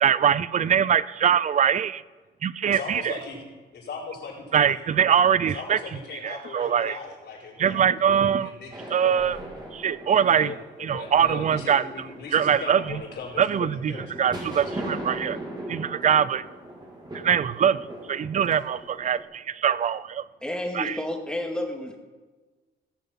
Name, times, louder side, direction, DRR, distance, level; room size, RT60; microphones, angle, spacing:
voice 1, 0.0-2.0 2.4-3.1 4.5-5.8 6.2-7.0 7.6-8.5 8.9-9.4 9.7-10.5 10.8-11.9 12.3-13.0 13.4-15.4 15.7-16.4 17.2-17.8 18.1-20.2 20.7-21.0, right 8 dB, 40° right, 18 dB, 0.5 m, -22 dB
voice 2, 2.7-3.4 3.7-4.8 5.5-9.4 10.2-14.6, left 4 dB, 60° left, -3 dB, 4.5 m, -39 dB
sound 1, 8.7-19.2, right 1 dB, 20° right, 3.1 m, -39 dB
voice 3, 20.4-22.0, left 1 dB, 5° left, 2 dB, 2.3 m, -30 dB
17.5 x 6.8 x 5.9 m, 1.3 s
cardioid pair, 90°, 20 cm